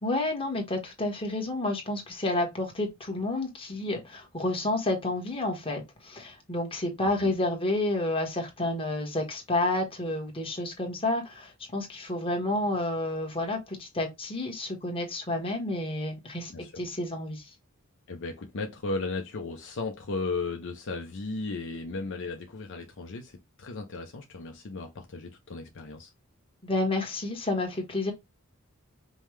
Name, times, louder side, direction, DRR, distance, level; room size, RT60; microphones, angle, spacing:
voice 1, 0.0-16.5 16.8-17.4 26.6-28.1, left 2 dB, 25° left, 1.2 m, -30 dB
voice 2, 16.5-16.8 18.1-26.1, left 3 dB, 60° left, 0.6 m, -35 dB
5.3 x 2.1 x 3.1 m
head